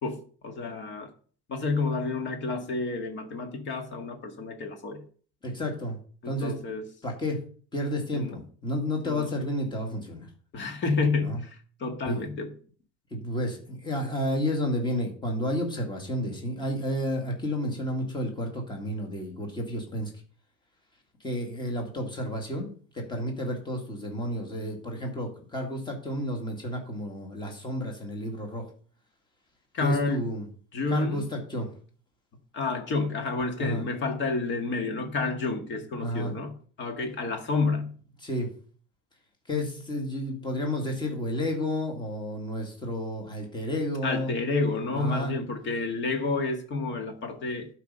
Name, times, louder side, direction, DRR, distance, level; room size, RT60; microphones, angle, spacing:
voice 1, 0.0-1.1 1.5-5.0 6.2-6.9 8.1-8.4 9.0-9.3 10.5-12.5 29.7-30.3 30.7-31.3 32.5-37.9 44.0-47.7, left 3 dB, 40° left, 5 dB, 1.8 m, -29 dB
voice 2, 5.4-6.0 6.3-6.6 7.0-7.4 7.7-10.3 11.2-11.4 12.1-12.3 13.1-20.1 21.2-22.7 22.9-28.6 29.8-30.5 30.9-31.7 33.6-33.8 36.0-36.3 38.2-38.5 39.5-44.3 44.9-45.3, equal, 15° left, 1 dB, 2.0 m, -31 dB
11.5 x 4.9 x 5.5 m, 0.43 s
cardioid pair, 165°, 29 cm